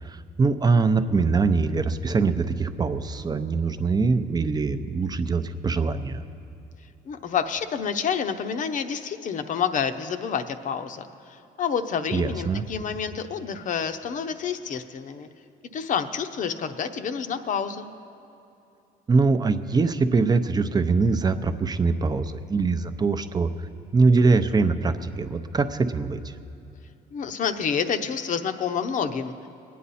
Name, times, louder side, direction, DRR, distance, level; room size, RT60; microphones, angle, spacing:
voice 1, 0.0-6.2 12.1-12.6 19.1-23.5 23.9-26.3, right 4 dB, 25° right, 9 dB, 0.6 m, -23 dB
voice 2, 7.1-15.3 15.7-17.9 27.1-29.3, left 7 dB, 50° left, 8 dB, 0.8 m, -28 dB
22.0 x 9.4 x 4.2 m, 2.8 s
cardioid pair, 110°, 17 cm